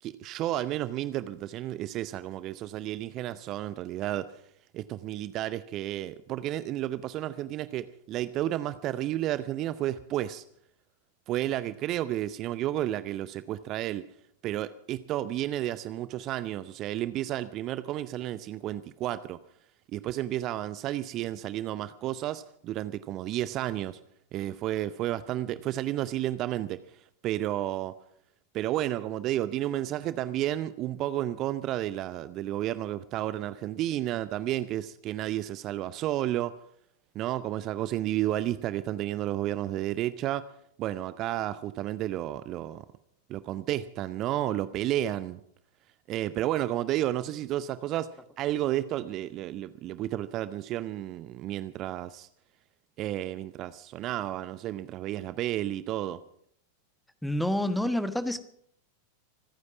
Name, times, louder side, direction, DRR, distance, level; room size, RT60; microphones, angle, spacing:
voice 1, 0.0-4.4 4.7-10.4 11.3-14.1 14.4-19.4 19.9-24.0 24.3-26.8 27.2-27.9 28.5-36.6 37.1-40.5 40.8-42.8 43.3-45.4 46.1-52.3 53.0-56.2, right 13 dB, 35° right, 15 dB, 0.7 m, -32 dB
voice 2, 57.2-58.4, left 1 dB, 5° left, 11 dB, 1.3 m, -28 dB
25.0 x 9.7 x 6.0 m, 0.68 s
figure-of-eight pair, 90°, 0 cm